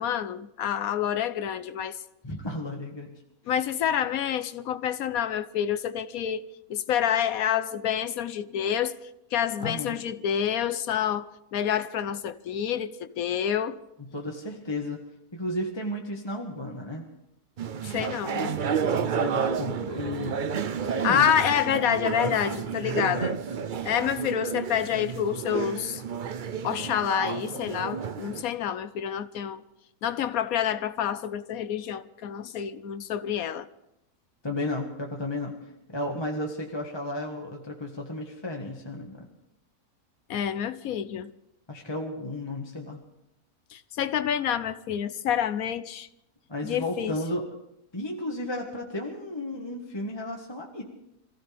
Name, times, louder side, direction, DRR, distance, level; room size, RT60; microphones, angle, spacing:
voice 1, 0.0-2.0 3.5-9.0 9.3-13.8 17.8-18.6 21.0-23.4 23.8-26.0 26.6-29.6 30.0-33.7 40.3-41.3 43.7-46.1 46.6-47.2, left 9 dB, 70° left, 1.2 m, -28 dB
voice 2, 2.2-3.1 9.6-10.0 14.1-15.0 15.3-17.0 19.0-20.4 20.9-21.3 34.4-35.5 35.9-39.3 41.7-43.0 46.5-47.5 47.9-50.8, left 1 dB, 15° left, 1.5 m, -33 dB
sound 1, 17.6-28.4, right 6 dB, 60° right, 0.5 m, -31 dB
26.0 x 15.5 x 3.5 m
omnidirectional pair, 1.6 m